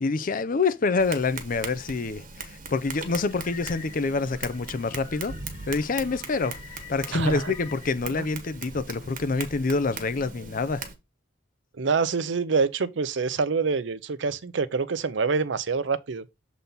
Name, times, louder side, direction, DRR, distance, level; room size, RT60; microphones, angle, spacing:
voice 1, 0.0-5.3 5.7-6.6 6.9-10.8, left 3 dB, 45° left, 0.6 m, -27 dB
Tap, 1.0-10.9, right 4 dB, 45° right, 1.2 m, -40 dB
sound 1, 2.8-7.9, left 7 dB, 30° left, 1.3 m, -48 dB
voice 2, 7.1-7.5 11.8-16.2, right 5 dB, 70° right, 0.6 m, -26 dB
6.9 x 4.1 x 3.9 m
head